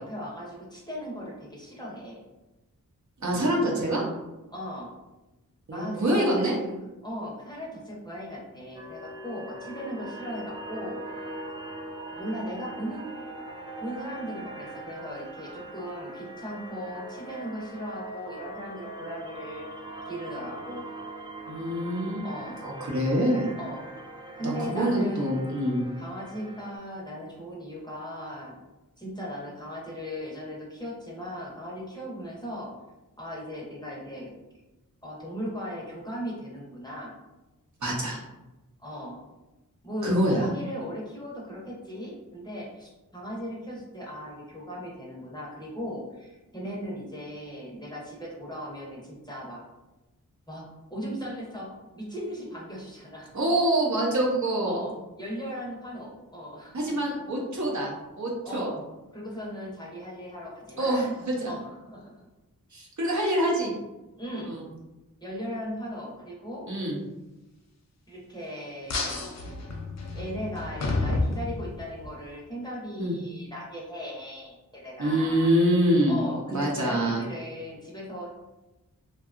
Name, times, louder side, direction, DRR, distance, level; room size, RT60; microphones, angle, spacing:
voice 1, 0.0-2.2 4.5-4.9 5.7-6.8 7.0-11.2 12.1-13.2 13.8-19.7 20.1-20.8 22.2-22.6 23.6-23.8 24.4-25.4 26.0-28.6 29.0-32.7 33.2-34.3 35.0-37.1 38.8-39.2 39.8-49.6 50.5-53.3 54.6-56.8 58.4-58.7 59.1-61.2 61.5-62.1 64.2-64.6 65.2-66.7 68.1-69.3 70.1-75.5 76.1-78.3, equal, 10° left, -5 dB, 0.7 m, -37 dB
voice 2, 3.2-4.0 5.7-6.5 21.5-22.2 22.6-23.5 24.4-25.8 37.8-38.2 40.0-40.5 53.3-54.8 56.7-58.7 60.8-61.5 62.7-63.7 64.5-64.6 66.7-67.0 73.0-73.2 75.0-76.2 76.5-77.2, right 1 dB, 55° right, -3 dB, 0.7 m, -25 dB
sound 1, 8.7-26.8, right 1 dB, 15° right, 0.3 m, -41 dB
sound 2, 68.9-72.1, left 2 dB, 50° left, 0.4 m, -30 dB
2.7 x 2.3 x 2.4 m, 1.0 s
wide cardioid pair, 75°, 34 cm